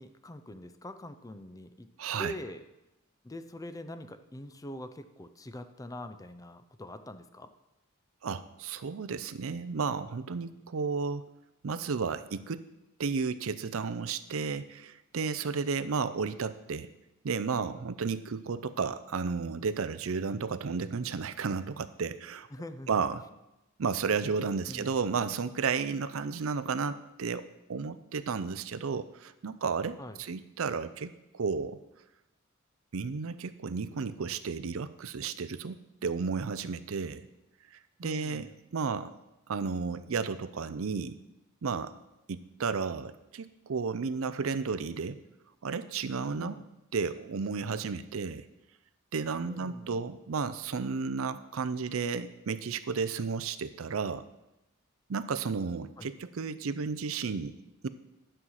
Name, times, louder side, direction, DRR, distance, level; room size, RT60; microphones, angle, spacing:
voice 1, 0.0-1.9 2.2-2.7 3.2-7.5 22.5-22.9 24.7-25.0 30.0-30.2 38.0-38.5 46.4-46.7 49.5-49.9 56.0-56.1, left 1 dB, 15° left, 10 dB, 0.5 m, -44 dB
voice 2, 2.0-2.3 8.2-11.3 11.6-12.7 13.0-16.9 17.2-22.5 22.9-23.2 23.8-31.8 32.9-37.2 38.0-39.1 39.5-41.2 41.6-42.0 42.3-45.2 45.6-46.6 46.9-48.5 49.1-54.2 55.1-57.5 57.8-57.9, right 5 dB, 70° right, 13 dB, 0.5 m, -33 dB
9.9 x 5.6 x 6.4 m, 0.93 s
head